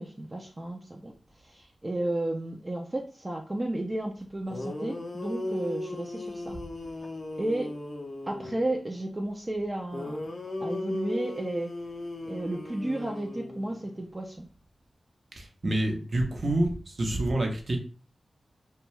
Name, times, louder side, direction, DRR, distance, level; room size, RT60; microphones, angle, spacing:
voice 1, 0.0-6.6 7.3-7.7 8.2-10.2 10.6-11.7 12.2-14.5, right 1 dB, 25° right, 1 dB, 0.4 m, -33 dB
sound 1, 4.2-4.3 4.5-8.7 9.9-13.9, left 2 dB, 50° left, 0.4 m, -37 dB
voice 2, 15.4-17.8, right 1 dB, 55° right, 3 dB, 0.7 m, -28 dB
2.7 x 2.2 x 3.1 m, 0.38 s
wide cardioid pair, 85°, 0 cm